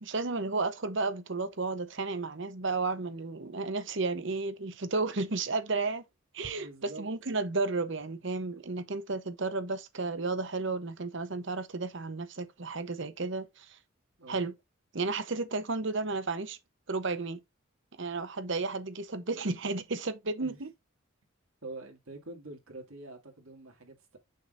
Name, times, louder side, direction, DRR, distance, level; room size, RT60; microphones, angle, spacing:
voice 1, 0.0-6.0 6.3-13.8 14.3-14.5 14.9-16.6 16.9-17.4 18.0-20.7, right 3 dB, 55° right, 0.9 m, -33 dB
voice 2, 6.5-7.1 14.2-14.4 20.4-20.6 21.6-24.2, right 2 dB, 75° right, 2.4 m, -46 dB
6.5 x 6.0 x 2.6 m
head